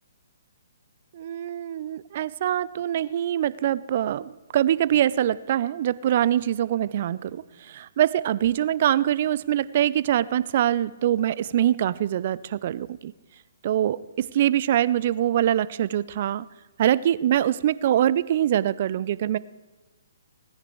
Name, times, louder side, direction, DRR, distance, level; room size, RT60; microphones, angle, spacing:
voice 1, 1.1-13.1 13.6-14.0 14.3-16.4 16.8-19.4, right 11 dB, 45° right, 19 dB, 0.4 m, -24 dB
18.0 x 9.9 x 4.6 m, 1.1 s
figure-of-eight pair, 130°, 0 cm